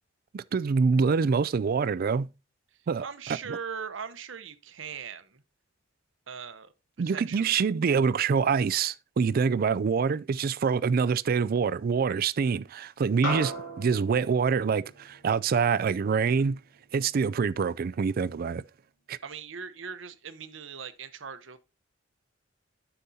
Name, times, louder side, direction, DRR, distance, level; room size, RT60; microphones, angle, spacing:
voice 1, 0.3-2.3 2.9-3.0 7.0-16.6 16.9-18.6 19.1-19.2, right 5 dB, 50° right, 0.3 m, -25 dB
voice 2, 3.0-5.4 6.3-7.6 19.2-21.6, right 6 dB, 70° right, 0.8 m, -40 dB
sound 1, 13.2-17.9, equal, 85° left, 2.6 m, -38 dB
9.9 x 6.9 x 2.7 m
head